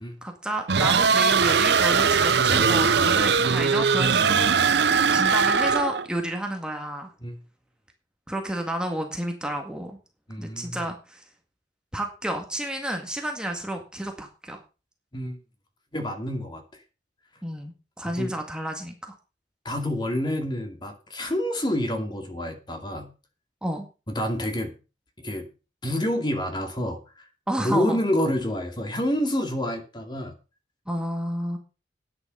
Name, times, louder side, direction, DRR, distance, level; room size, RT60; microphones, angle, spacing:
voice 1, 0.2-4.8 5.1-7.1 8.3-10.0 10.4-11.2 11.9-14.6 17.4-19.1 23.6-23.9 27.5-28.0 30.9-31.6, right 1 dB, 5° right, 3 dB, 1.9 m, -31 dB
sound 1, 0.7-6.1, right 6 dB, 65° right, 0.7 m, -20 dB
voice 2, 10.3-10.8 15.1-15.4 15.9-16.6 18.0-18.4 19.6-23.1 24.1-24.8 25.2-25.5 25.8-27.0 27.6-30.3, left 1 dB, 25° left, 5 dB, 2.5 m, -28 dB
11.0 x 9.7 x 5.5 m, 0.32 s
head